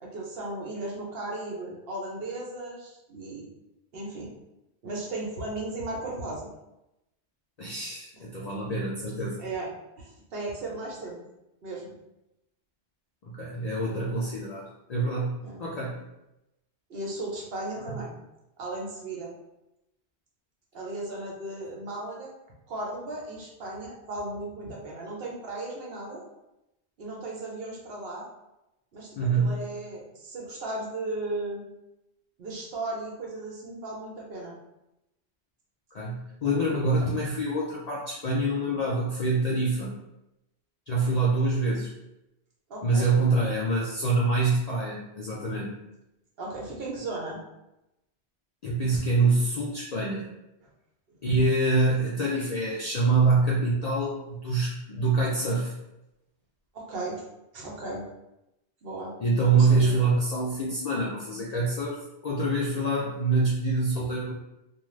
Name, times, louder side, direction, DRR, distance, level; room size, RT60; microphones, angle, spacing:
voice 1, 0.0-3.5 3.9-4.3 4.8-6.5 8.1-8.2 9.4-9.7 10.0-11.2 11.6-11.9 15.4-15.6 16.9-18.1 18.6-19.3 20.7-22.3 22.7-26.2 27.0-28.3 28.9-31.6 32.4-34.6 42.7-43.1 46.4-47.4 56.7-57.2 57.5-58.0 58.8-59.1 59.5-60.0, right 2 dB, 65° right, -2 dB, 0.9 m, -36 dB
voice 2, 7.6-9.4 13.2-16.0 17.8-17.9 29.2-29.6 35.9-40.0 40.9-41.9 42.8-45.7 48.6-50.3 51.2-55.7 59.2-62.0 62.2-64.3, right 3 dB, 60° left, -5 dB, 0.4 m, -25 dB
2.3 x 2.3 x 3.0 m, 0.90 s
omnidirectional pair, 1.1 m